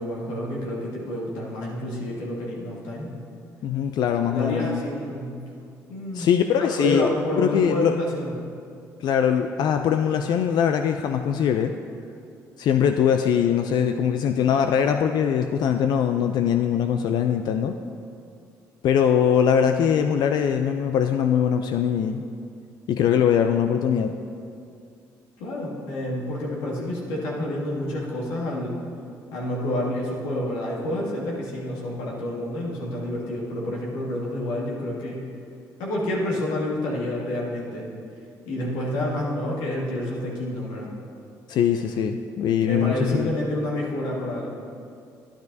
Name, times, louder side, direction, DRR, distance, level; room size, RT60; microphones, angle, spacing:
voice 1, 0.0-3.1 4.3-5.4 5.9-6.3 6.6-8.3 25.4-28.7 29.3-35.2 35.8-37.9 38.4-40.9 42.6-44.5, left 1 dB, 85° left, -4 dB, 1.8 m, -29 dB
voice 2, 3.6-4.8 6.1-8.0 9.0-11.7 12.6-17.8 18.8-22.2 22.9-24.2 41.5-43.3, left 8 dB, 65° left, 7 dB, 0.4 m, -22 dB
11.5 x 9.6 x 2.7 m, 2.4 s
supercardioid pair, 60°, 8 cm